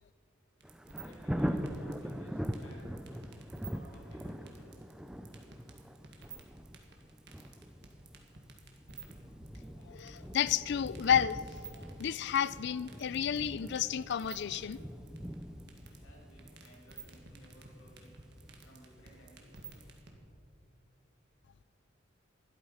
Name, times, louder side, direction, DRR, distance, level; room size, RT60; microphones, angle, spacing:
Thunder, 0.6-19.4 19.9-20.0, equal, 5° right, 0.4 m, -42 dB
sound 1, 0.6-20.1, right 5 dB, 60° right, 1.7 m, -51 dB
voice 1, 0.8-2.9 3.5-4.8 15.9-18.2 18.6-19.7, equal, 90° left, -3 dB, 4.0 m, -58 dB
voice 2, 9.8-11.4 11.7-14.8, left 8 dB, 60° left, 18 dB, 0.4 m, -31 dB
12.5 x 11.5 x 5.6 m, 2.5 s
head